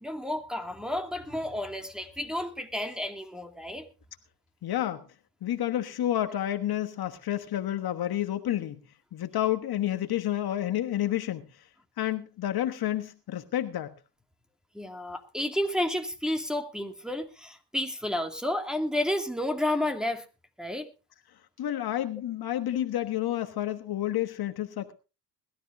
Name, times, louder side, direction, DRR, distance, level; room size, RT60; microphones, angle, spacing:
voice 1, 0.0-3.9 14.7-20.2 20.6-20.9, left 1 dB, ahead, 2.4 m, -31 dB
voice 2, 4.6-5.0 5.4-8.8 9.1-11.5 12.0-13.9 21.6-24.9, left 12 dB, 50° left, 1.4 m, -30 dB
21.5 x 13.0 x 2.7 m
supercardioid pair, 70°, 48 cm